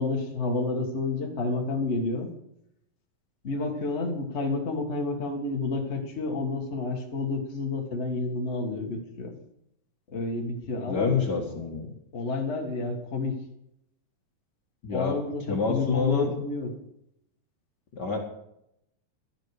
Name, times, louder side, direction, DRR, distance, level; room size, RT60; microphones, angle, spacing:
voice 1, 0.0-2.3 3.4-9.4 10.1-11.2 11.5-11.7 12.1-13.4 14.9-16.7, left 3 dB, 75° left, 0 dB, 0.6 m, -30 dB
voice 2, 10.8-11.9 14.8-15.2 15.5-16.4 17.9-18.2, left 5 dB, 55° left, 1 dB, 1.1 m, -27 dB
13.0 x 12.5 x 4.9 m, 0.80 s
omnidirectional pair, 4.3 m